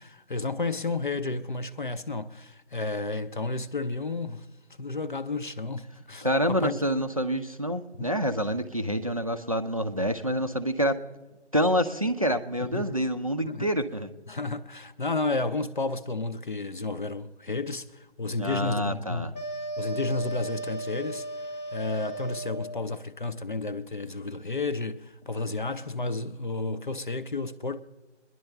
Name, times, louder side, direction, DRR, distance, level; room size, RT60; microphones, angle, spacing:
voice 1, 0.0-4.5 4.8-6.7 8.0-8.1 12.6-13.0 13.4-13.7 14.3-19.3 19.8-21.3 21.7-27.8, left 3 dB, 45° left, 0.6 m, -32 dB
voice 2, 6.2-11.0 11.5-14.1 18.4-19.3, equal, 30° right, 0.5 m, -27 dB
sound 1, 19.3-22.8, right 2 dB, 10° left, 1.0 m, -36 dB
23.0 x 11.0 x 3.3 m
figure-of-eight pair, 160°, 36 cm